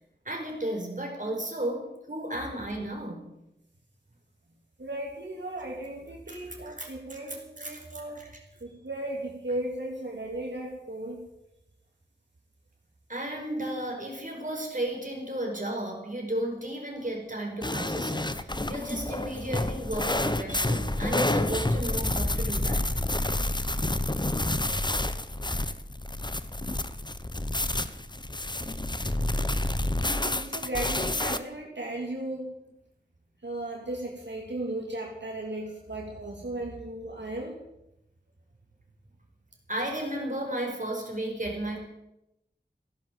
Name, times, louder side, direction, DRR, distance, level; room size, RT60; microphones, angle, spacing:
voice 1, 0.3-3.3 6.3-7.2 7.6-8.3 13.1-22.9 39.7-41.8, right 1 dB, 45° right, 0 dB, 5.2 m, -34 dB
voice 2, 4.8-8.3 8.6-11.2 30.0-32.5 33.4-37.6, right 1 dB, 80° right, -1 dB, 3.2 m, -36 dB
sound 1, 17.6-31.4, left 1 dB, 25° left, 1.0 m, -29 dB
16.5 x 11.0 x 7.7 m, 0.87 s
wide cardioid pair, 45°, 18 cm